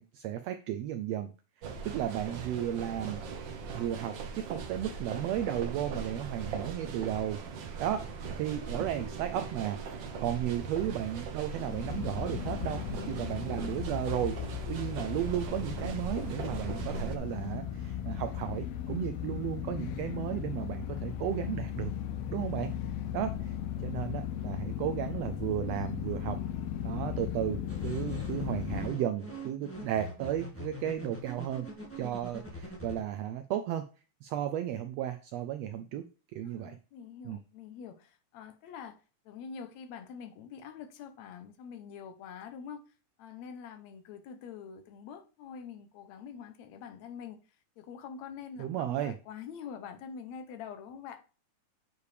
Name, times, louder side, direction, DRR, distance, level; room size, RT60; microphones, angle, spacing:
voice 1, 0.0-1.3 1.6-3.2 3.7-7.4 7.8-9.8 10.2-21.9 22.3-22.7 23.1-23.5 23.8-26.4 26.8-31.7 32.0-33.9 34.2-36.0 36.3-36.8 37.2-37.4 48.6-49.1, right 11 dB, 85° right, 1.4 m, -34 dB
sound 1, 1.6-17.2, right 5 dB, 70° right, 1.1 m, -40 dB
sound 2, 11.5-28.9, left 10 dB, 90° left, 1.4 m, -37 dB
sound 3, 27.7-33.0, equal, 10° left, 0.9 m, -43 dB
voice 2, 36.4-39.0 39.3-42.8 43.2-47.4 47.8-51.2, left 7 dB, 70° left, 2.0 m, -45 dB
8.4 x 4.7 x 3.3 m
omnidirectional pair, 3.4 m